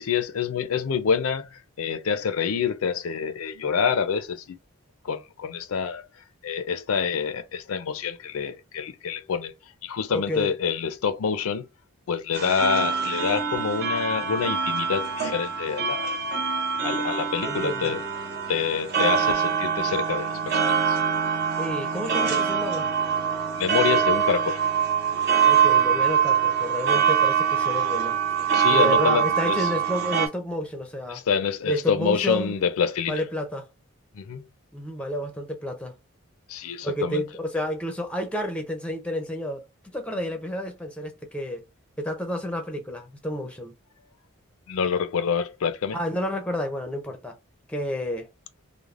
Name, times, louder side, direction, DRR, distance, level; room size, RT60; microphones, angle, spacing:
voice 1, 0.0-4.6 5.0-6.0 6.4-9.5 9.8-11.7 12.1-16.2 16.8-18.0 18.5-21.0 23.6-24.6 28.5-29.7 31.1-33.2 34.1-34.5 36.5-37.2 44.7-46.0, left 6 dB, 80° left, 0.4 m, -27 dB
voice 2, 10.1-10.5 17.4-17.9 21.6-22.9 25.5-28.2 28.7-31.2 31.7-32.5 33.1-33.7 34.7-35.9 36.8-39.6 39.9-41.6 42.0-43.7 45.9-47.3 47.7-48.3, equal, 5° left, 0.4 m, -30 dB
sound 1, 12.3-30.3, right 7 dB, 45° right, 0.5 m, -24 dB
3.2 x 2.0 x 2.4 m
head